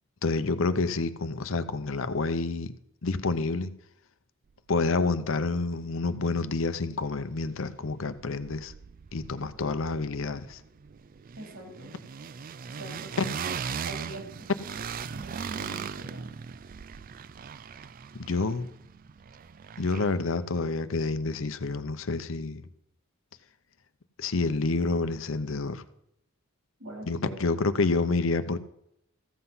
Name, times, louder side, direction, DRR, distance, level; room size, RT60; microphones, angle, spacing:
voice 1, 0.2-2.7 3.0-3.7 4.7-8.7 9.1-10.6 13.2-13.3 18.1-18.7 19.8-22.6 24.2-25.8 27.1-28.6, left 3 dB, 70° left, 12 dB, 0.7 m, -28 dB
sound 1, 6.4-6.5 6.7-7.9 8.1-20.3, right 6 dB, 45° right, 0.4 m, -39 dB
voice 2, 11.4-12.0 12.7-13.3 13.8-14.5 15.1-16.3 26.8-27.4, right 1 dB, 70° right, 1 dB, 3.8 m, -43 dB
14.5 x 8.0 x 5.6 m, 0.77 s
head